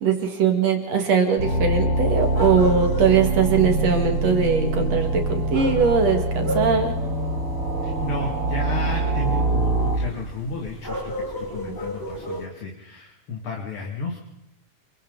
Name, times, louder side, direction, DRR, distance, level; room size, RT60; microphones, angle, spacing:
voice 1, 0.0-6.9 11.7-11.8, right 5 dB, 60° right, 4 dB, 3.2 m, -21 dB
sound 1, 1.4-10.0, right 2 dB, 35° right, 4.8 m, -24 dB
sound 2, 2.0-12.5, equal, 10° left, 2.0 m, -35 dB
voice 2, 7.8-14.2, left 2 dB, 45° left, 0 dB, 3.0 m, -32 dB
28.0 x 23.5 x 4.0 m, 0.83 s
omnidirectional pair, 3.5 m